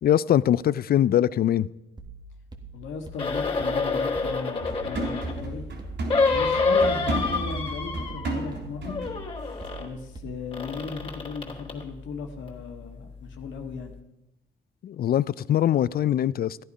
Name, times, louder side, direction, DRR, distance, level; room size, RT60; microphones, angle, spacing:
voice 1, 0.0-1.7 14.8-16.6, left 11 dB, 50° left, 20 dB, 0.4 m, -22 dB
sound 1, 2.0-10.7, right 2 dB, 20° right, 1.7 m, -45 dB
voice 2, 2.7-5.6 6.3-9.0 9.8-13.9, left 5 dB, 75° left, 4 dB, 1.7 m, -37 dB
sound 2, 3.1-5.4 6.1-8.6 8.9-9.9 10.5-11.8 12.5-12.6, left 4 dB, 25° left, 2.9 m, -27 dB
sound 3, 4.6-9.2 9.5-9.7, right 2 dB, 65° right, 3.6 m, -33 dB
14.0 x 10.0 x 5.4 m, 0.94 s
cardioid pair, 90°, 20 cm